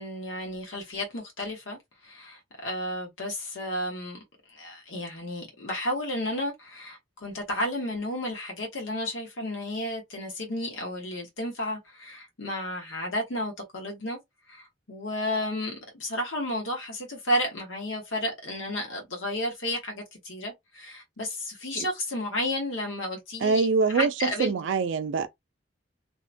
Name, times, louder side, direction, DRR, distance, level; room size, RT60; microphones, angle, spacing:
voice 1, 0.0-4.2 4.5-14.2 14.5-23.7 23.9-24.5, left 1 dB, 85° left, 1.1 m, -32 dB
voice 2, 23.4-25.3, right 4 dB, 70° right, 0.4 m, -24 dB
2.9 x 2.1 x 2.5 m
head